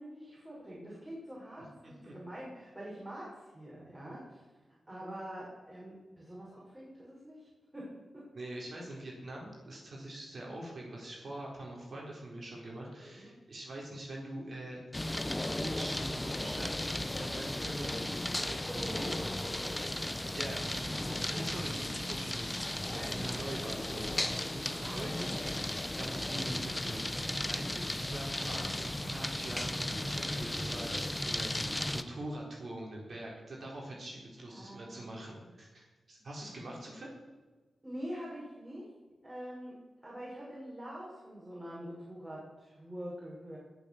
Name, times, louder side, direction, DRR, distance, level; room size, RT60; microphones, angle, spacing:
voice 1, 0.0-8.0 13.0-13.4 18.2-18.3 18.7-19.1 21.3-21.9 23.2-23.4 24.8-25.4 25.9-26.2 34.5-35.4 37.8-38.9 39.2-43.6, equal, 20° right, -5 dB, 6.3 m, -45 dB
voice 2, 1.6-2.2 8.3-14.8 15.6-18.9 19.2-19.3 20.3-25.3 26.0-37.1, right 1 dB, 60° right, -2 dB, 4.1 m, -44 dB
sound 1, 14.9-32.0, left 1 dB, 15° left, 1.0 m, -35 dB
19.5 x 7.3 x 7.2 m, 1.3 s
cardioid pair, 55°, 0 cm